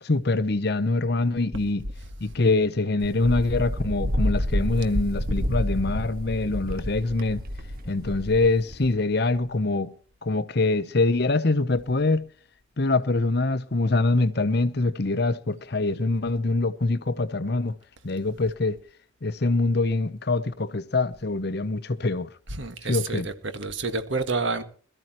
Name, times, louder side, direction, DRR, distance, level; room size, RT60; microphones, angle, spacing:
voice 1, 0.0-1.9 2.2-7.4 7.9-9.9 10.2-12.3 12.8-17.8 18.0-18.8 19.2-22.3 22.9-23.3, left 3 dB, 50° left, 0.8 m, -24 dB
Wind, 3.0-8.9, equal, 45° right, 1.4 m, -29 dB
voice 2, 22.5-24.6, right 3 dB, 65° right, 1.7 m, -29 dB
21.5 x 13.5 x 3.0 m
head